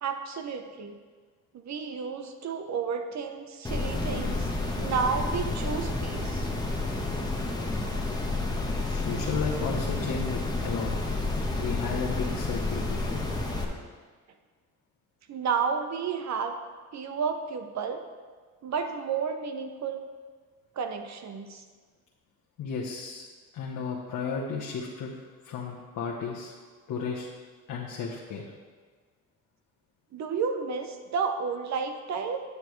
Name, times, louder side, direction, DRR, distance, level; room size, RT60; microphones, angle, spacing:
voice 1, 0.0-1.0 1.5-6.5 15.3-16.6 16.9-18.1 18.6-20.0 20.8-21.6 30.1-32.4, right 6 dB, 55° right, 7 dB, 0.8 m, -31 dB
sound 1, 3.6-13.6, left 2 dB, 10° left, 1.1 m, -30 dB
voice 2, 8.8-10.9 11.5-13.3 22.6-23.3 23.5-25.1 25.4-26.5 26.9-27.3 27.7-28.4, left 5 dB, 65° left, -3 dB, 1.0 m, -34 dB
9.7 x 6.7 x 3.2 m, 1.5 s
cardioid pair, 100°, 34 cm